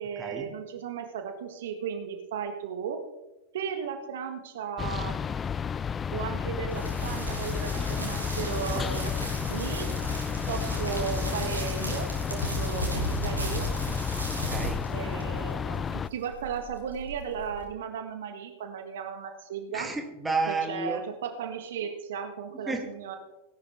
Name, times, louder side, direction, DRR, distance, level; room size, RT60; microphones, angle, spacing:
voice 1, 0.0-3.0 3.5-5.3 6.1-9.1 9.5-9.9 10.5-13.7 14.9-19.9 20.5-23.2, right 7 dB, 60° right, 6 dB, 1.5 m, -35 dB
sound 1, 4.8-16.1, left 7 dB, 20° left, 0.4 m, -31 dB
sound 2, 6.7-17.7, right 2 dB, 85° right, 2.9 m, -36 dB
voice 2, 14.3-14.8 19.7-21.0 22.5-22.9, right 3 dB, 10° right, 4 dB, 1.9 m, -31 dB
18.0 x 11.5 x 3.5 m, 0.98 s
figure-of-eight pair, 90°, 0 cm